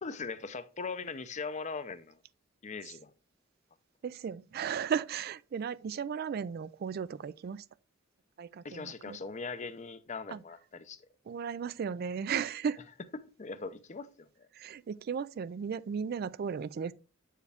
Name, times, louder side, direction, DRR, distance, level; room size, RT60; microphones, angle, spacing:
voice 1, 0.0-2.2 2.6-3.1 8.6-11.0 13.4-14.3, left 4 dB, 35° left, 0.6 m, -40 dB
voice 2, 4.0-7.6 8.4-9.2 10.3-10.4 11.3-12.8 14.5-16.9, right 7 dB, 50° right, 0.3 m, -35 dB
8.2 x 4.6 x 3.4 m
head